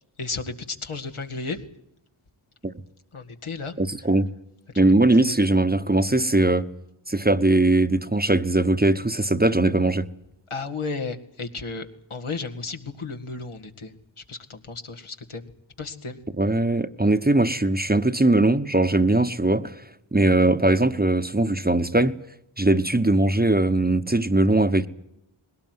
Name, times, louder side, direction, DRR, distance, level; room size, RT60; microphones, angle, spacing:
voice 1, 0.2-1.6 3.1-3.7 4.8-5.3 10.5-13.9 14.3-15.5 15.8-16.2, left 4 dB, 80° left, 2.1 m, -33 dB
voice 2, 3.8-4.3 4.8-6.7 7.1-10.1 16.4-19.7 20.1-22.2 22.6-24.9, right 2 dB, 20° right, 1.1 m, -20 dB
20.5 x 18.0 x 9.5 m
wide cardioid pair, 40°, 50 cm